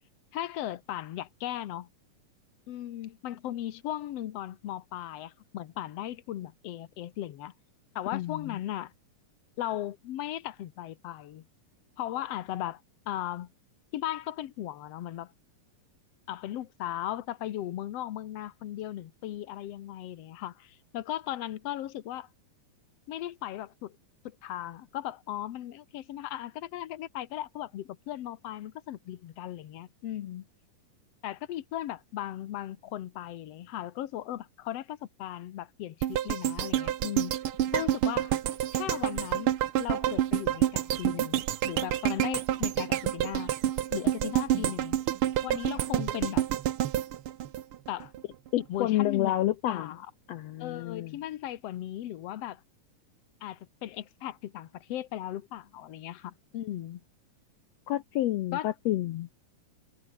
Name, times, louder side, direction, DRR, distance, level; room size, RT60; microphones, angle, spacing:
voice 1, 0.3-1.9 2.7-7.5 7.9-8.9 9.6-11.4 12.0-13.5 13.9-15.3 16.3-22.3 23.1-23.9 24.2-30.5 31.2-37.3 37.7-38.3 38.7-39.5 39.8-43.5 43.9-45.0 45.4-46.5 47.9-48.1 48.7-50.0 50.6-52.6 53.4-57.0 58.5-58.7, left 12 dB, 65° left, 1.8 m, -37 dB
voice 2, 8.1-8.6 48.5-49.9 50.3-51.2 57.9-59.3, left 14 dB, 85° left, 1.4 m, -29 dB
sound 1, 36.0-48.2 48.6-48.7, right 11 dB, 75° right, 1.2 m, -28 dB
omnidirectional pair, 3.9 m